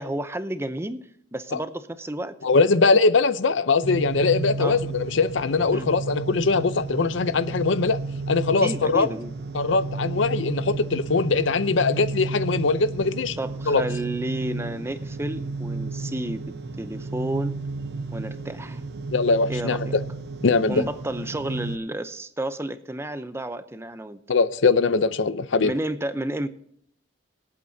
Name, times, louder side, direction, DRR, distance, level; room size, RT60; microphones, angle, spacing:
voice 1, 0.0-2.3 4.6-4.8 5.7-5.9 8.6-9.3 13.4-17.6 18.1-18.8 19.5-20.0 20.7-24.2 25.6-26.5, right 1 dB, 15° right, 0.6 m, -31 dB
voice 2, 2.4-8.0 8.3-9.1 9.5-13.4 13.7-13.8 19.1-20.0 20.4-20.8 24.3-25.7, left 4 dB, 70° left, 0.6 m, -21 dB
sound 1, 3.8-21.8, right 3 dB, 55° right, 0.9 m, -33 dB
24.5 x 8.7 x 2.7 m
head